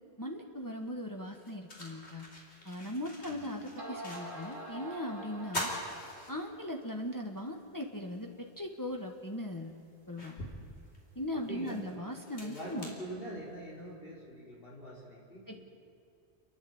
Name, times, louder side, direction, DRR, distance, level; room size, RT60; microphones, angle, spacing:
voice 1, 0.2-2.3 2.6-5.7 6.3-9.7 10.1-10.4 11.1-12.9 15.5-15.6, left 1 dB, 20° left, 1 dB, 1.4 m, -39 dB
sound 1, 0.6-0.7 1.2-4.6 4.9-5.0 5.4-6.9 7.4-7.5 8.9-9.0 9.6-13.8, left 1 dB, 90° left, 3.5 m, -43 dB
sound 2, 2.7-2.8 3.4-3.5 3.8-6.2, right 1 dB, 55° right, 2.1 m, -45 dB
voice 2, 11.5-11.8 12.4-15.6, right 1 dB, 55° left, -5 dB, 4.6 m, -44 dB
30.0 x 10.5 x 8.7 m, 2.5 s
omnidirectional pair, 1.1 m